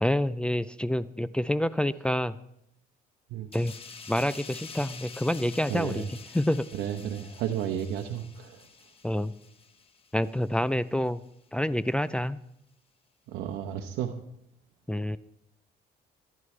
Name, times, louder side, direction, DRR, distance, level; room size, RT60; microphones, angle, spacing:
voice 1, 0.0-2.4 3.5-3.7 4.1-6.7 9.0-9.3 10.1-11.2 11.5-12.4 14.9-15.2, left 1 dB, 5° left, 13 dB, 0.4 m, -27 dB
sound 1, 3.5-10.7 11.0-11.3, left 5 dB, 35° left, 1.3 m, -48 dB
voice 2, 5.7-6.1 6.7-8.6 13.3-14.1, right 9 dB, 80° right, 5 dB, 1.0 m, -32 dB
22.5 x 11.0 x 3.3 m, 0.77 s
cardioid pair, 110°, 17 cm